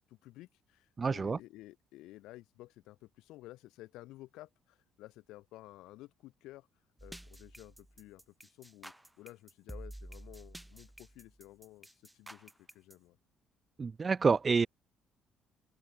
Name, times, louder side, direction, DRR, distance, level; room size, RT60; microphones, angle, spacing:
voice 1, 0.1-6.7 7.0-13.2, left 17 dB, 80° left, 3.8 m, -53 dB
voice 2, 1.0-1.4 13.8-14.7, right 5 dB, 35° right, 0.4 m, -28 dB
sound 1, 7.0-12.9, right 1 dB, 5° right, 2.1 m, -50 dB
supercardioid pair, 75°, 0 cm